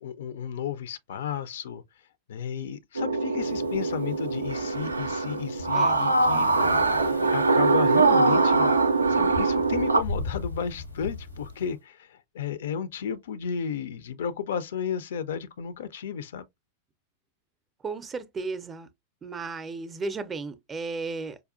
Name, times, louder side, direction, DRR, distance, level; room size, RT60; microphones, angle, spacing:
voice 1, 0.0-1.8 2.3-6.6 7.3-8.8 9.1-16.5, left 8 dB, 60° left, 0.3 m, -33 dB
sound 1, 3.0-10.0, right 3 dB, 80° right, 0.4 m, -23 dB
sound 2, 3.4-11.7, left 2 dB, 85° left, 0.8 m, -39 dB
voice 2, 17.8-18.9 19.2-21.4, right 3 dB, 20° right, 0.4 m, -34 dB
4.9 x 2.3 x 2.4 m
figure-of-eight pair, 90°, 0 cm